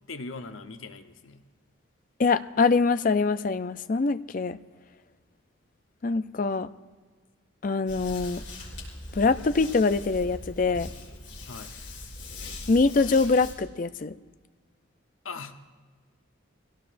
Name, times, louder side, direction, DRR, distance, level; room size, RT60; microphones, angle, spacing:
voice 1, 0.1-1.4 11.5-11.8 15.2-15.6, left 3 dB, 80° left, 7 dB, 0.9 m, -40 dB
voice 2, 2.2-4.6 6.0-6.7 7.6-8.4 9.1-10.9 12.7-14.1, left 4 dB, 40° left, 11 dB, 0.4 m, -24 dB
sound 1, 7.9-13.5, left 2 dB, 60° left, 4.7 m, -41 dB
23.5 x 17.0 x 2.6 m, 1.4 s
head